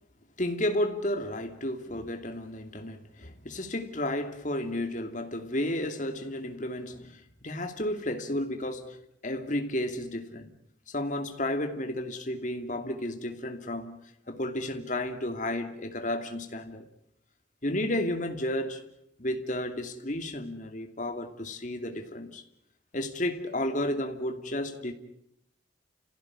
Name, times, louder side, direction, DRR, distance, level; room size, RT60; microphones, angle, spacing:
voice 1, 0.4-9.0 9.2-10.5 10.9-14.0 14.3-16.8 17.6-18.8 19.2-22.4 22.9-24.9, left 1 dB, 45° left, 2.6 m, -32 dB
30.0 x 16.0 x 9.8 m
head